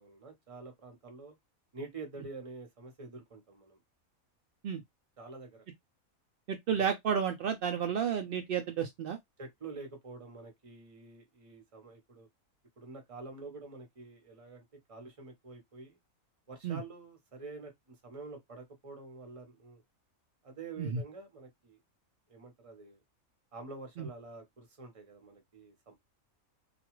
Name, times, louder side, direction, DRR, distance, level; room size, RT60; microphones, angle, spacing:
voice 1, 0.0-1.4 1.7-3.8 5.2-5.6 6.7-6.9 9.4-12.3 12.8-16.0 16.5-19.8 20.4-21.8 22.3-23.0 23.5-25.9, right 3 dB, 30° right, 0.7 m, -47 dB
voice 2, 6.5-9.2 16.6-16.8 20.8-20.9 24.0-24.1, right 8 dB, 75° right, 0.5 m, -31 dB
2.4 x 2.3 x 2.9 m
omnidirectional pair, 1.5 m